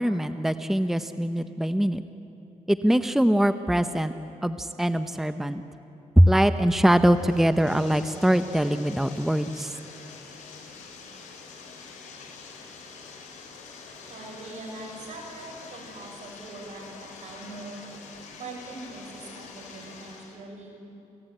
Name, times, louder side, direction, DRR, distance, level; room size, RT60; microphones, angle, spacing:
voice 1, 0.0-2.0 2.7-4.1 4.4-5.6 6.2-9.8, equal, 5° right, 10 dB, 0.8 m, -22 dB
Bathtub (filling or washing), 6.3-20.4, left 4 dB, 85° left, 4.8 m, -45 dB
voice 2, 14.1-17.8 18.4-20.8, right 2 dB, 70° right, 1 dB, 6.2 m, -42 dB
29.0 x 16.0 x 8.9 m, 2.9 s
cardioid pair, 80°, 13 cm